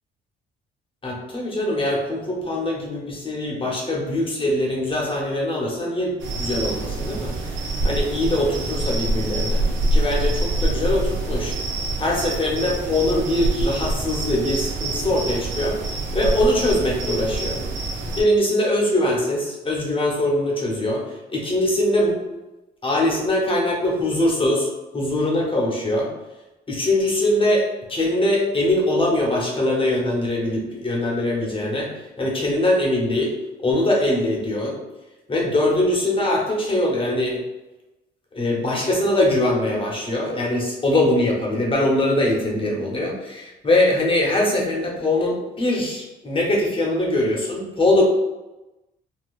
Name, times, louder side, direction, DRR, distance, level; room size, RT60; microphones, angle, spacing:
voice 1, 1.0-11.6 12.0-15.8 16.1-17.6 18.2-21.0 21.3-22.2 22.8-24.7 24.9-26.1 26.7-31.9 32.2-33.3 33.6-34.7 35.3-37.4 38.3-48.0, left 1 dB, 25° left, -2 dB, 0.9 m, -22 dB
sound 1, 6.2-18.2, right 2 dB, 75° right, 0.6 m, -25 dB
3.8 x 2.2 x 2.4 m, 1.0 s
cardioid pair, 90°, 20 cm